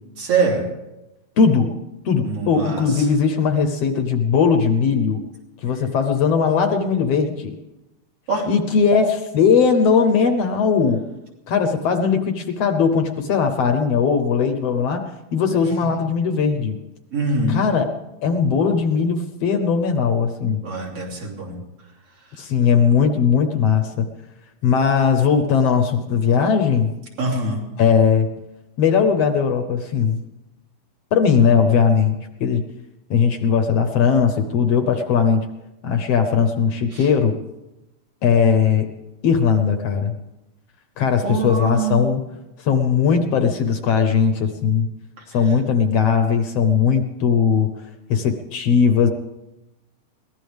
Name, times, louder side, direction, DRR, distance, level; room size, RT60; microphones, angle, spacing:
voice 1, 0.2-0.6 2.2-2.9 8.3-8.5 17.1-17.6 20.6-21.6 27.2-27.6 36.9-37.1 41.2-42.0, right 3 dB, 50° right, -1 dB, 3.9 m, -23 dB
voice 2, 1.4-1.8 2.1-5.2 5.6-7.6 8.5-11.0 11.5-16.8 17.5-17.9 18.2-20.6 22.4-24.1 24.6-26.9 27.8-28.3 28.8-30.2 31.1-32.6 33.1-35.5 35.8-37.4 38.2-38.9 39.2-40.1 41.0-42.2 42.6-44.9 45.3-47.7 48.1-49.1, left 6 dB, 65° left, 6 dB, 2.0 m, -19 dB
22.5 x 17.5 x 3.5 m, 0.95 s
omnidirectional pair, 3.3 m